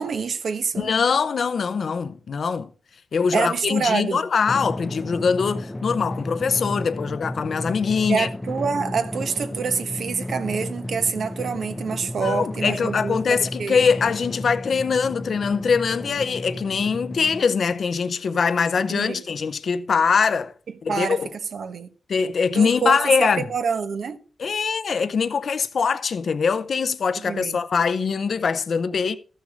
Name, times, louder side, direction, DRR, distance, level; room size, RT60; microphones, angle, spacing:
voice 1, 0.0-0.9 3.3-4.3 8.1-13.8 18.9-19.3 20.9-21.9 22.5-24.2 27.2-27.6, right 5 dB, 65° right, 1.2 m, -27 dB
voice 2, 0.8-2.7 3.1-8.3 12.2-20.5 20.8-21.3 22.1-23.4 24.4-29.2, left 5 dB, 60° left, 0.7 m, -22 dB
Drum, 4.5-17.4, left 1 dB, 15° left, 0.5 m, -33 dB
13.5 x 6.5 x 5.1 m
cardioid pair, 90°, 0 cm